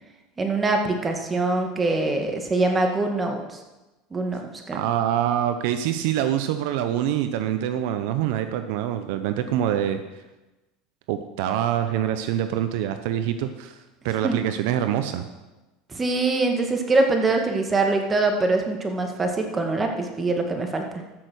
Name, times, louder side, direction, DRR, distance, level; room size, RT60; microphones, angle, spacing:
voice 1, 0.4-3.6 4.1-4.4 4.7-4.8 14.2-14.4 15.9-20.8, right 3 dB, 20° right, 3 dB, 2.0 m, -23 dB
voice 2, 4.7-10.0 11.1-15.3, right 11 dB, 70° right, 9 dB, 0.8 m, -25 dB
13.5 x 6.6 x 6.3 m, 1.1 s
supercardioid pair, 110°, 0 cm